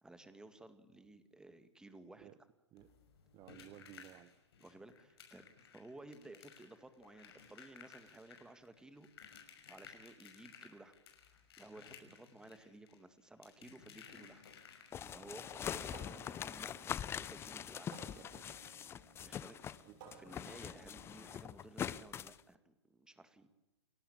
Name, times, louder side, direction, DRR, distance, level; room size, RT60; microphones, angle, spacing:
voice 1, 0.0-2.3 3.6-3.7 4.6-5.5 5.7-9.1 9.7-10.9 11.6-14.4 15.1-18.3 19.2-19.8 20.2-23.5, right 2 dB, 5° right, 11 dB, 2.1 m, -56 dB
sound 1, 2.8-15.3 16.7-16.8 17.1-17.3 17.7-17.8, left 7 dB, 60° left, 5.8 m, -58 dB
voice 2, 3.3-4.4 18.0-18.1 18.3-18.7 19.8-20.0, right 13 dB, 30° right, 13 dB, 1.0 m, -57 dB
sound 2, 14.9-19.8 20.1-22.4, left 9 dB, 15° left, 0.7 m, -43 dB
sound 3, 14.9-21.3, right 6 dB, 45° right, 6.7 m, -60 dB
29.0 x 13.0 x 8.7 m, 1.0 s
hypercardioid pair, 120°, 14 cm